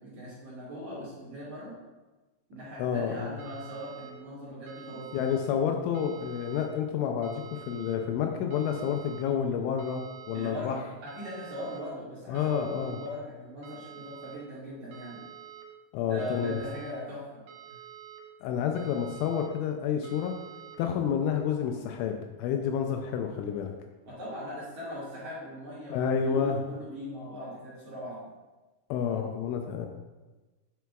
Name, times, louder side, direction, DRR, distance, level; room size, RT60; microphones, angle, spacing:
voice 1, 0.0-1.7 2.5-5.2 10.3-15.2 16.0-17.4 24.1-28.3, equal, 50° right, -10 dB, 2.6 m, -40 dB
voice 2, 2.8-3.4 5.1-10.7 12.3-13.0 15.9-16.6 18.4-20.4 20.8-23.7 25.9-26.6 28.9-29.9, left 7 dB, 85° left, 4 dB, 2.8 m, -29 dB
sound 1, 3.4-4.1 4.7-5.4 5.9-6.7 7.2-8.0 8.5-9.2 9.8-10.5 11.1-11.8 12.3-13.1 13.6-14.4 14.9-15.6 16.2-16.9 17.5-18.2 18.8-19.5 20.0-20.8, right 10 dB, 75° right, 2.5 m, -48 dB
9.1 x 6.9 x 2.3 m, 1.2 s
omnidirectional pair, 5.7 m